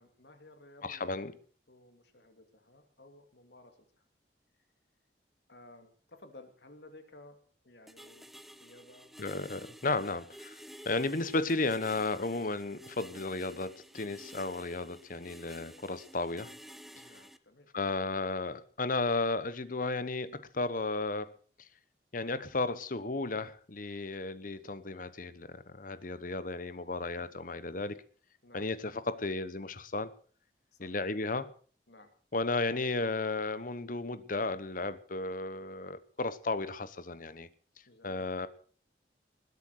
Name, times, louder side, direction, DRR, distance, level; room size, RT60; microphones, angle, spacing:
voice 1, 0.0-1.0 1.7-3.8 5.5-7.4 7.6-8.3 8.6-9.1 17.0-17.7 27.2-27.3 28.4-28.7 30.7-31.1 31.9-32.1 37.9-38.3, left 2 dB, 70° left, 2.7 m, -56 dB
voice 2, 0.8-1.3 9.2-10.6 10.8-16.5 17.7-21.3 22.1-28.0 28.5-30.1 30.8-31.5 32.3-37.5 38.0-38.5, left 3 dB, 50° left, 1.1 m, -34 dB
sound 1, 7.9-17.4, equal, ahead, 0.7 m, -52 dB
20.5 x 8.2 x 6.6 m
head